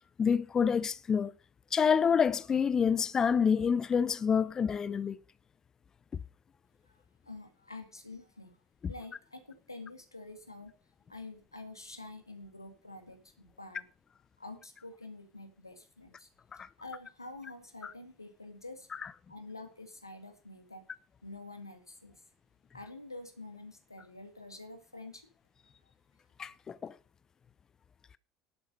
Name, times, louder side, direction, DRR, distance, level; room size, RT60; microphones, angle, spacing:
voice 1, 0.2-1.3 1.7-5.2 16.5-16.7 17.8-17.9 26.4-26.9, left 6 dB, 30° left, 0.6 m, -27 dB
voice 2, 6.8-8.6 8.9-10.7 11.1-13.9 14.4-16.3 16.5-18.9 19.3-20.9 21.2-22.2 22.7-25.3, left 2 dB, 85° left, 1.9 m, -47 dB
11.5 x 8.2 x 5.4 m
figure-of-eight pair, 65°, 2 cm